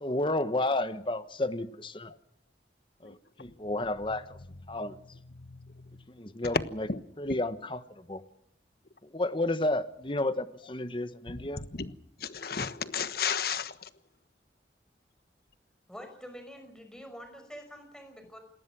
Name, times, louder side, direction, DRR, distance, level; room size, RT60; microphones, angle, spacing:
voice 1, 0.0-2.1 3.0-4.2 4.7-4.9 6.2-6.9 7.2-7.8 8.1-8.2 9.1-11.6, left 2 dB, 30° left, 1.2 m, -31 dB
voice 2, 11.3-11.9 12.2-13.9, left 6 dB, 60° left, 1.3 m, -33 dB
voice 3, 15.9-18.4, equal, 5° left, 5.5 m, -46 dB
28.0 x 19.5 x 6.1 m
head